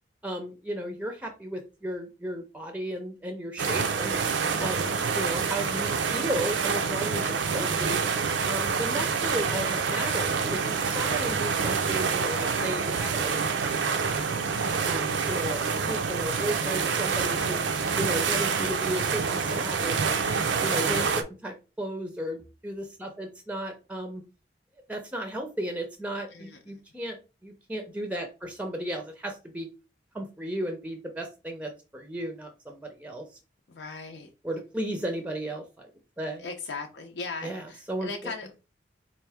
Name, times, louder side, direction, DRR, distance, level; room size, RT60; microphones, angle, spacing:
voice 1, 0.2-4.2 4.6-8.0 8.5-13.3 14.9-17.6 18.0-20.3 20.6-24.2 24.9-29.7 30.1-33.2 34.4-35.9 36.2-36.5 37.4-38.3, right 1 dB, 5° right, 5 dB, 0.5 m, -34 dB
sound 1, 3.6-21.2, right 5 dB, 85° right, 0.5 m, -27 dB
voice 2, 20.7-21.1 26.3-26.8 33.7-34.3 36.4-38.6, left 4 dB, 75° left, 2 dB, 0.6 m, -40 dB
4.5 x 2.6 x 3.4 m, 0.30 s
head